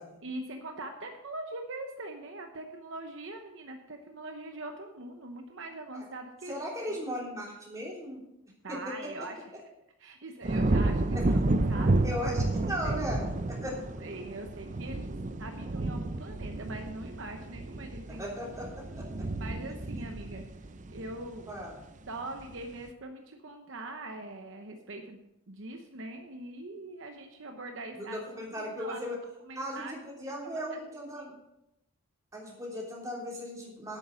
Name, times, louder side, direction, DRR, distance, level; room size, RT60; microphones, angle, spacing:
voice 1, 0.2-6.6 6.9-7.0 8.6-9.4 10.0-12.0 12.8-13.0 14.0-18.2 19.4-20.6 20.9-21.5 22.1-25.2 25.5-29.0 29.4-30.0 30.7-30.8 31.2-31.3, right 2 dB, 60° right, 4 dB, 0.9 m, -42 dB
voice 2, 6.5-8.2 11.1-11.2 12.0-13.8 18.1-18.7 18.9-19.0 21.5-21.7 28.0-29.2 29.5-31.3 32.3-34.0, equal, 15° right, -4 dB, 3.3 m, -37 dB
sound 1, 10.4-21.7 22.2-22.6, right 2 dB, 35° right, 0.6 m, -31 dB
11.0 x 8.5 x 5.2 m, 0.86 s
head